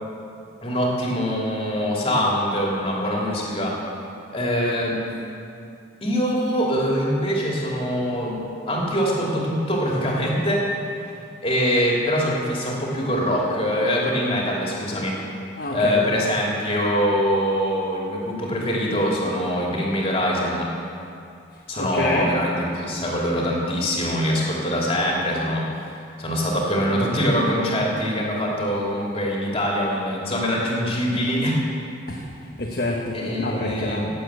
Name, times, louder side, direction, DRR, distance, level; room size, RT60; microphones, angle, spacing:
voice 1, 0.6-3.8 4.3-5.0 6.0-8.4 8.7-10.7 11.4-15.2 15.7-20.7 21.7-25.9 26.2-31.6 33.1-34.1, equal, 30° left, -3 dB, 2.9 m, -23 dB
voice 2, 15.6-16.1 21.8-22.3 32.1-34.1, left 1 dB, 50° left, -2 dB, 1.3 m, -27 dB
17.5 x 7.9 x 8.3 m, 2.6 s
head